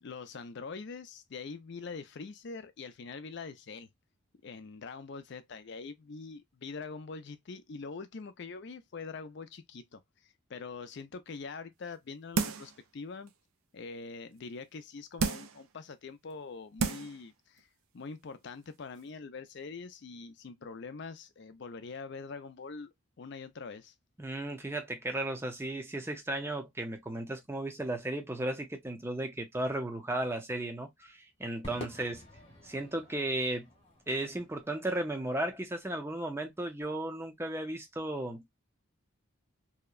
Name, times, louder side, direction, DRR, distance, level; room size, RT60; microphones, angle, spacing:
voice 1, 0.0-3.9 4.4-13.3 13.7-17.7 17.9-23.9, left 4 dB, 55° left, 0.4 m, -44 dB
sound 1, 12.4-12.8 13.3-13.4 15.2-15.6 16.3-16.4 16.8-17.2 17.6-17.7, right 4 dB, 80° right, 0.4 m, -31 dB
voice 2, 24.2-32.2 32.6-33.7 34.1-38.4, right 1 dB, 10° right, 0.5 m, -35 dB
Crowd / Fireworks, 31.6-36.1, left 1 dB, 25° left, 0.9 m, -49 dB
2.8 x 2.1 x 2.2 m
head